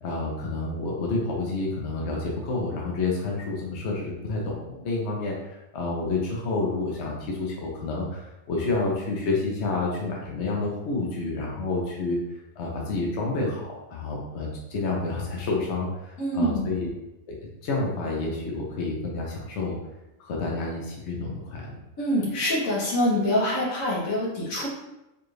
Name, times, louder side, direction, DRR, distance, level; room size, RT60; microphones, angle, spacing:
voice 1, 0.0-8.2 8.5-12.2 12.6-16.9 17.3-17.4 17.6-19.8 20.2-21.8, left 3 dB, 60° left, -2 dB, 1.0 m, -29 dB
voice 2, 16.2-16.7 22.0-24.7, left 1 dB, 80° left, -5 dB, 1.5 m, -25 dB
4.8 x 2.4 x 3.2 m, 0.96 s
omnidirectional pair, 1.4 m